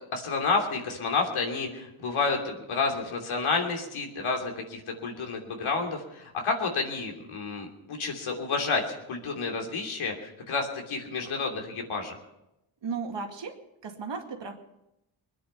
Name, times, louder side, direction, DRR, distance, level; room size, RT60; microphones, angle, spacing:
voice 1, 0.1-12.2, left 4 dB, 75° left, 2 dB, 3.0 m, -30 dB
voice 2, 12.8-14.6, right 5 dB, 60° right, 3 dB, 2.3 m, -35 dB
21.5 x 10.0 x 5.6 m, 0.89 s
cardioid pair, 65°, 49 cm